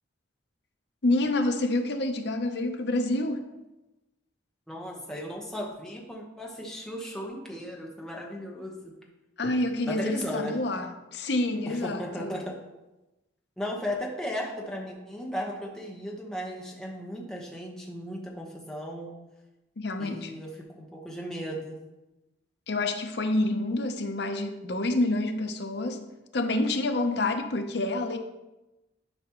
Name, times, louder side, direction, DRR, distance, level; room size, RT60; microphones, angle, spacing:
voice 1, 1.0-3.4 9.4-12.4 19.8-20.3 22.7-26.1 26.3-28.2, left 2 dB, 60° left, 6 dB, 0.7 m, -28 dB
voice 2, 4.7-9.0 9.9-10.6 11.6-12.5 13.6-19.1 20.0-21.8, equal, 5° left, -2 dB, 1.0 m, -36 dB
11.0 x 5.0 x 3.0 m, 1.0 s
head